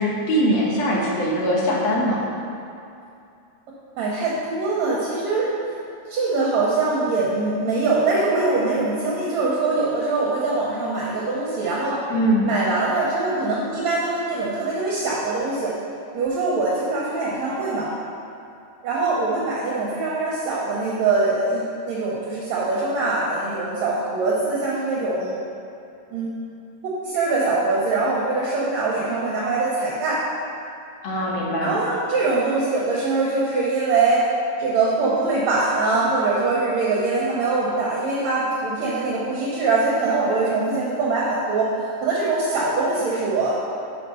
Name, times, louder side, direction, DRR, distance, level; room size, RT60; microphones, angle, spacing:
voice 1, 0.0-2.2 12.1-12.5 31.0-31.8, equal, 65° left, -4 dB, 2.0 m, -21 dB
voice 2, 4.0-5.5 6.1-12.0 12.4-15.7 16.1-17.9 18.8-25.4 26.1-26.3 26.8-30.2 31.6-34.2 34.6-43.6, right 3 dB, 70° right, -5 dB, 2.0 m, -23 dB
5.8 x 5.7 x 5.4 m, 2.6 s
omnidirectional pair, 3.6 m